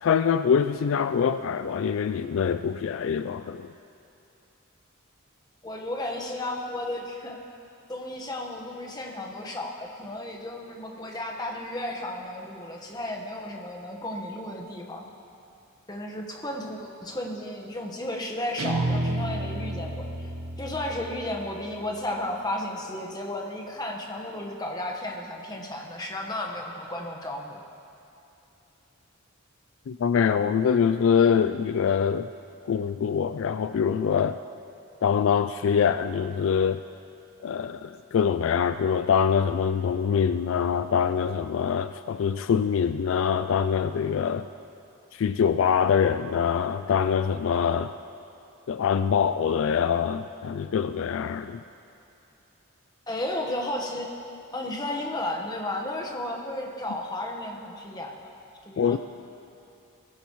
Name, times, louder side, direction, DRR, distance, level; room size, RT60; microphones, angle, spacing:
voice 1, 0.0-3.7 29.9-32.3 32.7-34.4 35.0-36.8 37.4-44.5 45.1-47.9 48.7-51.6 58.8-59.0, left 7 dB, 65° left, 11 dB, 0.3 m, -24 dB
voice 2, 5.6-7.4 7.9-15.0 15.9-20.1 20.6-27.6 53.1-54.1 54.5-58.3 58.6-59.0, left 1 dB, 20° left, 1 dB, 1.3 m, -33 dB
Guitar, 18.6-21.8, right 1 dB, 85° right, 1.0 m, -31 dB
20.5 x 15.5 x 3.1 m, 2.8 s
head